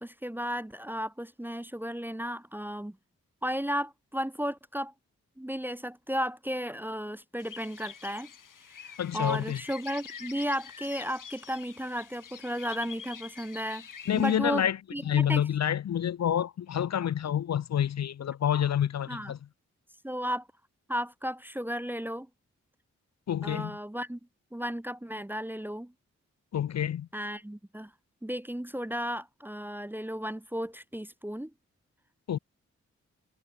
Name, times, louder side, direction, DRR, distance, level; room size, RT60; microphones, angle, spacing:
voice 1, 0.0-3.0 3.4-4.9 5.4-8.3 8.7-13.9 14.1-14.6 14.9-15.5 19.1-19.3 20.0-20.5 20.9-22.3 23.4-24.2 24.5-25.9 27.1-27.9 28.2-31.5, equal, 5° right, 0.6 m, -34 dB
sound 1, 7.4-14.4, left 7 dB, 80° left, 4.2 m, -46 dB
voice 2, 9.0-9.6 14.1-14.8 15.1-19.4 23.3-23.7 26.5-27.1 32.3-32.4, left 9 dB, 60° left, 0.5 m, -28 dB
cardioid pair, 40°, 31 cm